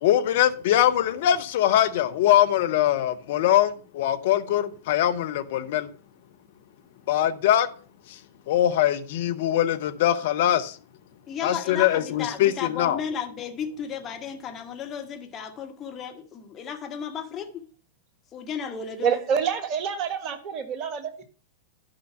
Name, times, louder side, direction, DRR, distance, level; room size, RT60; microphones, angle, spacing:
voice 1, 0.0-5.9 7.1-7.7 8.1-8.2 8.5-10.8 11.4-13.0, left 12 dB, 55° left, 0.9 m, -22 dB
voice 2, 11.3-17.6 18.3-19.2, left 7 dB, 30° left, 1.9 m, -34 dB
voice 3, 19.0-21.2, right 7 dB, 35° right, 1.6 m, -27 dB
12.0 x 5.6 x 5.7 m
figure-of-eight pair, 100°, 0 cm